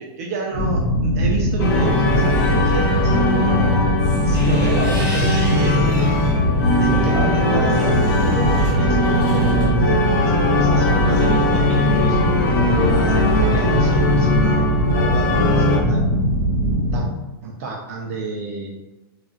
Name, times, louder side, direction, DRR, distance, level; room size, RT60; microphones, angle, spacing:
voice 1, 0.0-3.7 4.3-6.1 6.8-12.2 12.9-16.2 16.9-17.1 17.4-18.8, right 3 dB, 40° right, -1 dB, 0.4 m, -30 dB
sound 1, 0.5-17.1, equal, 65° left, 1.0 m, -20 dB
sound 2, 1.6-15.8, left 2 dB, 50° left, 0.5 m, -21 dB
sound 3, 4.1-6.4 6.9-9.7, equal, 10° right, 1.0 m, -35 dB
2.4 x 2.0 x 3.7 m, 1.1 s
supercardioid pair, 175°, 13 cm